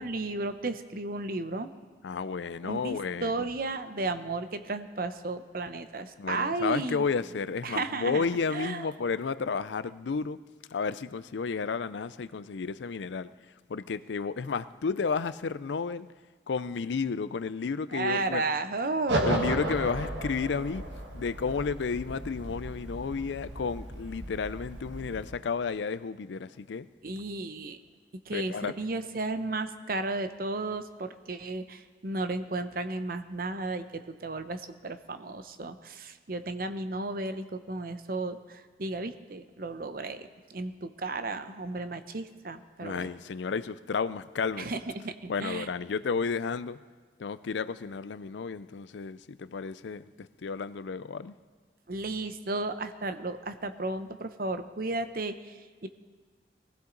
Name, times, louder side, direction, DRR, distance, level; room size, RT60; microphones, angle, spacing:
voice 1, 0.0-1.7 2.6-7.0 7.6-8.2 8.5-8.8 17.9-19.6 27.0-27.8 28.3-43.1 44.6-45.7 51.9-55.9, right 2 dB, 55° right, 9 dB, 0.8 m, -34 dB
voice 2, 2.0-3.4 6.2-10.4 10.7-13.3 13.7-16.1 16.5-18.4 19.2-20.9 21.1-26.9 28.3-28.7 42.8-44.7 45.3-46.8 47.2-51.3, left 5 dB, 85° left, 15 dB, 0.5 m, -32 dB
sound 1, 19.1-25.2, right 1 dB, 90° right, 1.8 m, -34 dB
20.5 x 15.5 x 3.9 m, 1.4 s
head